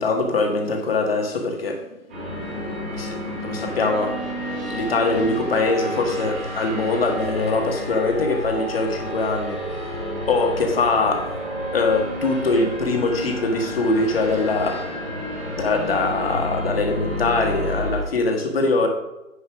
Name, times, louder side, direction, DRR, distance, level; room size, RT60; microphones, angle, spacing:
voice 1, 0.0-1.9 2.4-4.2 4.5-9.9 10.3-11.3 11.7-14.9 15.4-18.9, left 3 dB, 45° left, 1.7 m, -23 dB
sound 1, 2.1-18.0, equal, 10° right, 0.9 m, -30 dB
9.7 x 4.4 x 6.1 m
hypercardioid pair, 165°, 41 cm